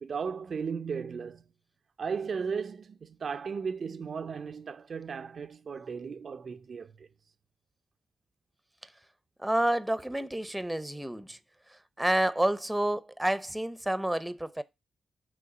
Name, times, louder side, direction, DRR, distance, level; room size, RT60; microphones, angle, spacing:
voice 1, 0.0-1.4 2.0-7.1, right 6 dB, 55° right, 0.5 m, -36 dB
voice 2, 9.4-11.4 12.0-14.6, right 1 dB, 5° right, 0.7 m, -29 dB
6.3 x 3.5 x 6.0 m
cardioid pair, 80°, 0 cm